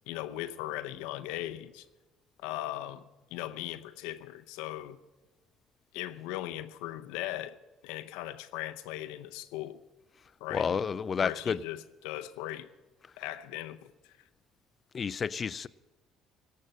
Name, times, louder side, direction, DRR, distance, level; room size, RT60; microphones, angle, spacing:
voice 1, 0.1-1.9 2.4-3.0 3.3-5.0 5.9-7.6 7.8-9.8 10.4-10.8 11.2-12.7 13.2-13.9, left 14 dB, 85° left, 0.7 m, -38 dB
voice 2, 10.5-11.6 14.9-15.7, left 6 dB, 40° left, 0.5 m, -30 dB
18.0 x 6.6 x 8.8 m
supercardioid pair, 75°, 0 cm